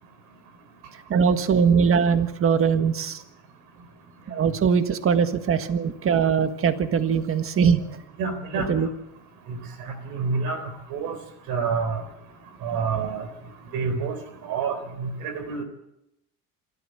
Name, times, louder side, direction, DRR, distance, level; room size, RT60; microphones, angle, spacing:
voice 1, 1.1-3.2 4.3-7.8 8.7-8.9, right 6 dB, 40° right, 9 dB, 1.6 m, -21 dB
voice 2, 8.2-8.7 9.5-11.2 11.5-12.0 12.6-13.3 13.7-14.2 14.4-15.6, right 5 dB, 75° right, 10 dB, 4.0 m, -28 dB
26.5 x 13.5 x 7.9 m, 0.85 s
cardioid pair, 120°, 35 cm